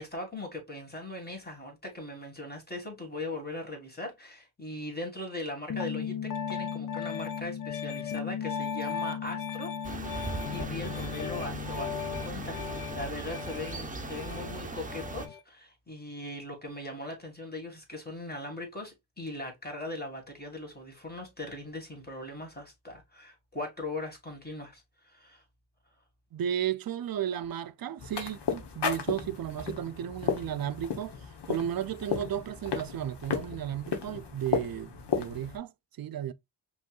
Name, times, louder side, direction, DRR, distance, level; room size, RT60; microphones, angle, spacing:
voice 1, 0.0-25.4, left 2 dB, 25° left, 1.9 m, -40 dB
Piano, 5.7-15.4, left 7 dB, 50° left, 0.5 m, -36 dB
sound 1, 9.8-15.3, right 3 dB, 20° right, 0.8 m, -39 dB
voice 2, 26.3-35.7 36.0-36.3, right 10 dB, 60° right, 0.5 m, -34 dB
sound 2, 28.0-35.6, left 6 dB, 75° left, 0.9 m, -34 dB
5.2 x 3.1 x 2.3 m
cardioid pair, 65°, 41 cm